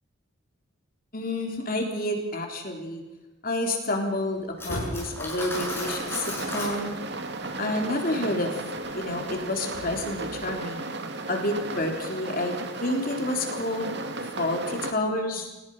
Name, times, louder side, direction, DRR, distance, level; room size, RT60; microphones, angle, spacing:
voice 1, 1.1-3.0 3.4-6.9 7.6-8.5 8.9-10.8 11.3-12.5 12.8-13.9 14.4-15.5, left 1 dB, 40° left, 2 dB, 3.9 m, -29 dB
sound 1, 4.4-7.6 8.7-10.6, left 1 dB, 80° left, 7.8 m, -40 dB
Cutlery silverware, 4.6-6.8, left 1 dB, 10° left, 7.7 m, -34 dB
sound 2, 5.5-14.9, right 2 dB, 50° right, 2.3 m, -35 dB
28.5 x 18.5 x 5.7 m, 1.1 s
head